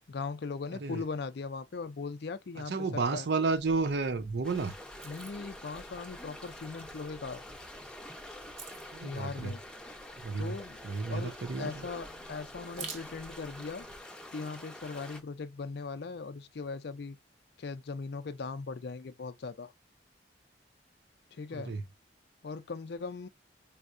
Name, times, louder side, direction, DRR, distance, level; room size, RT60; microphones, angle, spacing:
voice 1, 0.1-3.3 5.0-7.4 9.0-9.6 10.4-10.8 11.1-13.9 14.3-17.2 17.6-19.7 21.3-21.7 22.4-23.3, left 4 dB, 60° left, 0.4 m, -39 dB
voice 2, 2.7-4.7 8.9-9.6 10.2-10.6 10.8-11.7 21.5-21.8, right 4 dB, 65° right, 0.6 m, -31 dB
sound 1, 3.5-14.0, right 4 dB, 35° right, 0.9 m, -51 dB
sound 2, 4.4-15.2, left 1 dB, 5° left, 0.6 m, -47 dB
4.5 x 2.1 x 2.5 m
head